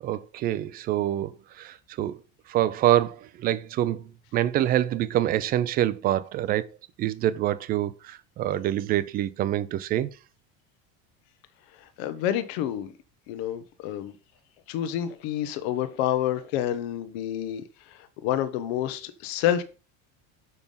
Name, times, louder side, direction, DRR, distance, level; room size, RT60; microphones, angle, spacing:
voice 1, 0.0-2.2 2.5-6.7 7.0-10.1, right 12 dB, 30° right, 0.4 m, -26 dB
voice 2, 12.0-12.9 13.3-14.1 14.7-17.6 18.2-19.6, left 11 dB, 75° left, 1.1 m, -28 dB
6.9 x 5.5 x 5.5 m
cardioid pair, 175°, 31 cm